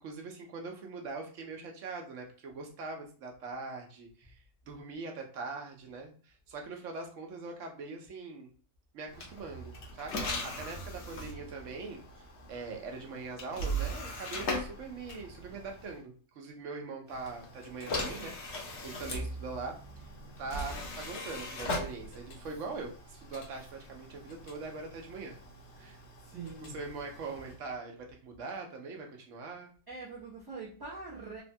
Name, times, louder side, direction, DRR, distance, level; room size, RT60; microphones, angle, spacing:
voice 1, 0.0-8.5 8.9-12.0 12.5-18.3 18.8-20.1 20.4-25.4 25.8-26.0 26.6-29.7, right 3 dB, 80° right, 3 dB, 1.0 m, -42 dB
sound 1, 9.1-16.0 17.1-27.6, equal, 65° left, 1.1 m, -40 dB
voice 2, 26.2-26.8 29.9-31.4, right 4 dB, 25° right, -8 dB, 0.6 m, -43 dB
3.2 x 2.1 x 2.6 m, 0.40 s
omnidirectional pair, 1.3 m